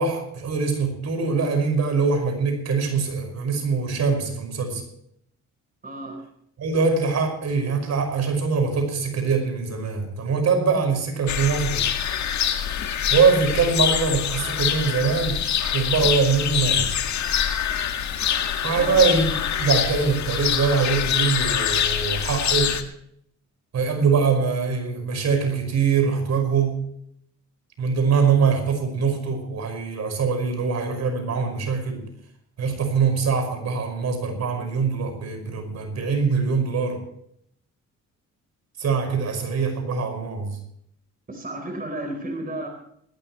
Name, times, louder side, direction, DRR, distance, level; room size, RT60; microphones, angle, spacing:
voice 1, 0.0-4.8 6.6-11.8 13.1-15.4 15.7-16.9 18.6-19.3 19.6-22.8 23.7-26.8 27.8-32.0 32.6-37.0 38.8-40.6, right 5 dB, 60° right, 6 dB, 5.4 m, -23 dB
voice 2, 5.8-6.2 18.7-19.0 41.3-42.7, right 1 dB, 30° right, 4 dB, 4.0 m, -32 dB
sound 1, 11.3-22.8, left 9 dB, 65° left, 1.8 m, -25 dB
20.0 x 16.0 x 3.1 m, 0.69 s
cardioid pair, 90°, 30 cm